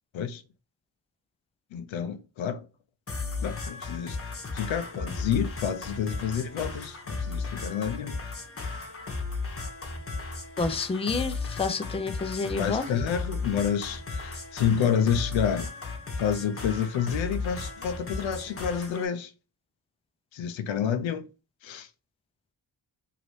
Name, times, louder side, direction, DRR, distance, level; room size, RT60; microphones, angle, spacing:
voice 1, 1.7-2.6 3.4-4.2 4.5-8.2 12.5-15.7 16.2-19.3 20.3-21.2 21.6-21.9, left 8 dB, 80° left, 0.6 m, -29 dB
sound 1, 3.1-19.1, left 3 dB, 30° left, 1.0 m, -35 dB
voice 2, 10.6-12.8, left 4 dB, 15° left, 0.4 m, -29 dB
2.8 x 2.6 x 3.1 m
cardioid pair, 55°, 46 cm